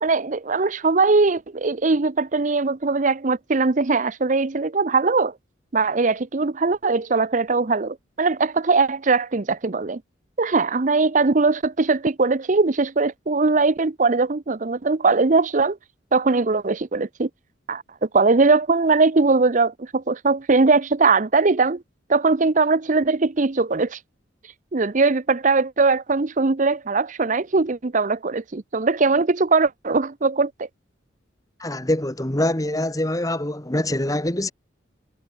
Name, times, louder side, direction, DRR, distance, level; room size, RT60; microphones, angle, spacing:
voice 1, 0.0-5.3 5.7-10.0 10.4-15.8 16.1-17.3 17.7-17.8 18.1-21.8 22.1-24.0 24.7-30.7, right 3 dB, 40° right, 0.7 m, -20 dB
voice 2, 31.6-34.5, left 1 dB, 20° left, 1.5 m, -24 dB
head